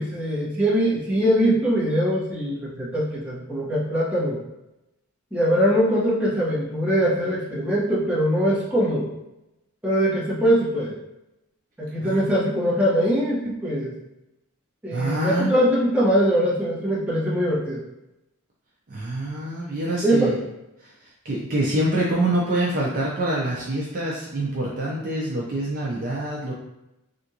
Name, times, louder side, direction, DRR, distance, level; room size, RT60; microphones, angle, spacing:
voice 1, 0.0-4.4 5.3-9.1 9.8-10.9 11.8-13.9 14.8-17.8 20.0-20.3, equal, 5° right, -9 dB, 1.0 m, -22 dB
voice 2, 14.9-15.5 18.9-20.4 20.8-20.9 21.2-26.5, right 1 dB, 40° right, -5 dB, 0.5 m, -25 dB
3.4 x 2.5 x 2.8 m, 0.93 s
head